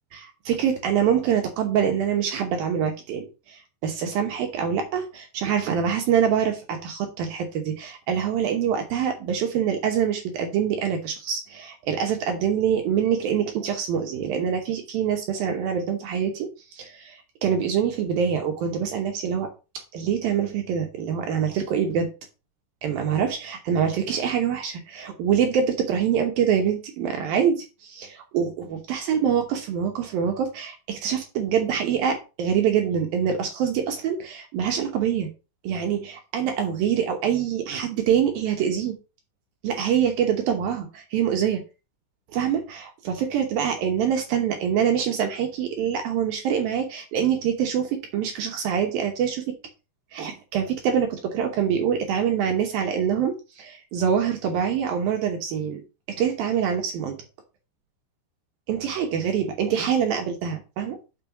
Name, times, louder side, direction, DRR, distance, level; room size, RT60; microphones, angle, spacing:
voice 1, 0.1-19.5 19.9-22.1 22.8-35.3 35.6-39.0 39.6-41.6 42.3-49.5 50.1-55.8 56.2-57.2 58.7-61.0, right 8 dB, 75° right, 4 dB, 2.1 m, -25 dB
6.2 x 5.4 x 5.8 m, 0.30 s
omnidirectional pair, 5.6 m